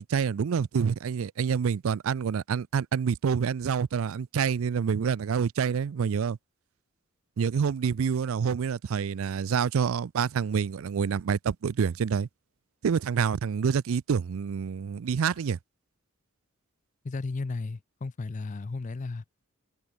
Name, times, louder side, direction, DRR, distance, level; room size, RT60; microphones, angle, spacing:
voice 1, 0.0-6.4 7.4-12.3 12.8-15.6, right 6 dB, 75° right, 0.4 m, -27 dB
voice 2, 17.0-19.2, left 3 dB, 35° left, 0.4 m, -34 dB
head